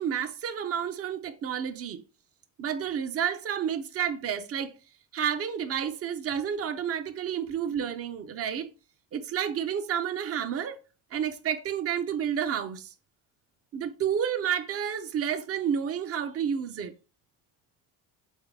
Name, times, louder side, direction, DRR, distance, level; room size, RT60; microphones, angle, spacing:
voice 1, 0.0-2.0 2.6-4.8 5.1-8.7 9.1-10.8 11.1-12.9 13.7-16.9, right 8 dB, 40° right, 0.6 m, -30 dB
4.0 x 3.6 x 3.5 m
cardioid pair, 105°, 38 cm